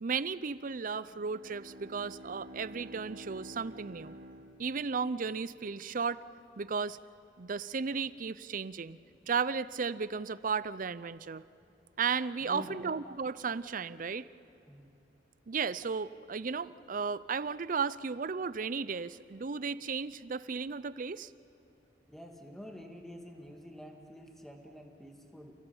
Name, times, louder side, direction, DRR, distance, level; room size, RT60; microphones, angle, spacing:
voice 1, 0.0-4.2 4.6-6.2 6.6-7.0 7.4-9.0 9.3-11.4 12.0-14.3 15.5-21.3, right 5 dB, 50° right, 17 dB, 0.5 m, -34 dB
Bowed string instrument, 1.1-5.4, equal, 70° right, 2.5 m, -50 dB
voice 2, 12.4-12.9 14.7-14.9 22.1-25.5, equal, ahead, 2 dB, 2.1 m, -47 dB
29.5 x 16.0 x 7.2 m, 2.8 s
head